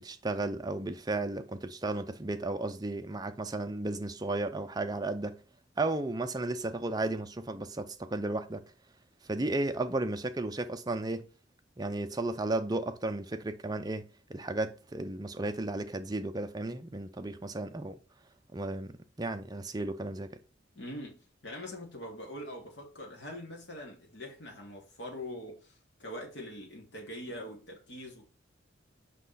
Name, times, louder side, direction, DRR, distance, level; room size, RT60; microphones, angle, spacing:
voice 1, 0.0-5.4 5.8-8.7 9.3-11.3 11.8-18.0 18.5-20.4, right 2 dB, 20° right, 0.5 m, -34 dB
voice 2, 20.7-28.3, left 1 dB, 65° left, 2.3 m, -43 dB
6.1 x 5.0 x 4.0 m
head